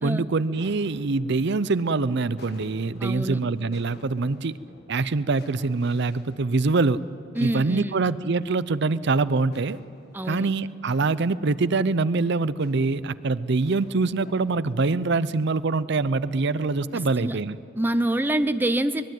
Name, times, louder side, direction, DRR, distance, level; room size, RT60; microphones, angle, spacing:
voice 1, 0.0-4.6 4.9-7.0 7.4-9.8 10.3-17.6, right 3 dB, 60° right, 16 dB, 0.6 m, -24 dB
sound 1, 0.5-18.3, left 1 dB, 55° left, 1.6 m, -52 dB
voice 2, 3.0-3.4 7.3-8.0 10.1-10.5 16.9-17.4 17.8-19.0, right 1 dB, 10° right, 9 dB, 0.7 m, -26 dB
23.5 x 20.5 x 9.3 m, 2.5 s
head